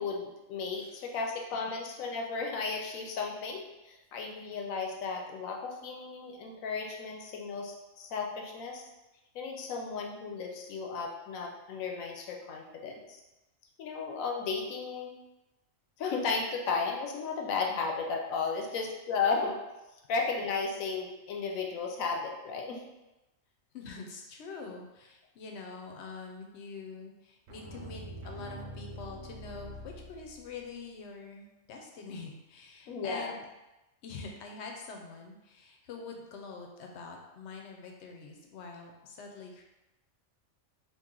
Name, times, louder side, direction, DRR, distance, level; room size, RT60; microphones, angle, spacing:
voice 1, 0.0-8.9 9.3-13.2 13.8-15.2 16.0-19.6 20.1-22.8 32.9-33.4, left 4 dB, 85° left, 1 dB, 1.0 m, -34 dB
voice 2, 23.7-33.5 34.0-39.7, left 4 dB, 65° left, 2 dB, 0.8 m, -45 dB
sound 1, 27.5-30.6, equal, 85° right, 1.0 m, -44 dB
3.0 x 2.5 x 3.6 m, 0.99 s
omnidirectional pair, 1.4 m